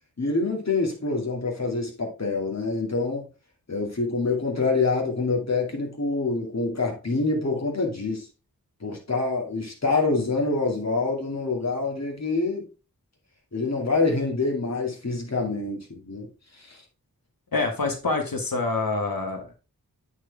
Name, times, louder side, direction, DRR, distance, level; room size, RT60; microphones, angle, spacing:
voice 1, 0.2-3.3 3.7-8.3 8.8-12.6 13.5-16.3 16.6-16.8, left 3 dB, 45° left, 2.4 m, -26 dB
voice 2, 17.5-19.5, left 3 dB, 70° left, 1.7 m, -26 dB
8.7 x 4.7 x 3.5 m
wide cardioid pair, 55°, 35 cm